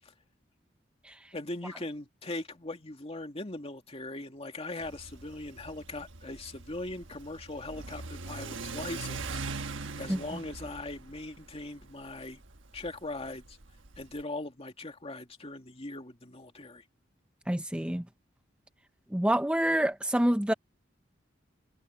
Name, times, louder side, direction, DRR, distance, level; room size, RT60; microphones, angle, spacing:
voice 1, 1.3-9.6 10.0-12.4 12.7-13.6 14.0-16.8, left 2 dB, 30° left, 2.3 m, -40 dB
Car / Accelerating revving vroom, 4.8-14.2, right 3 dB, 85° right, 1.3 m, -42 dB
voice 2, 17.5-18.0 19.1-20.5, right 1 dB, 5° right, 0.7 m, -27 dB
head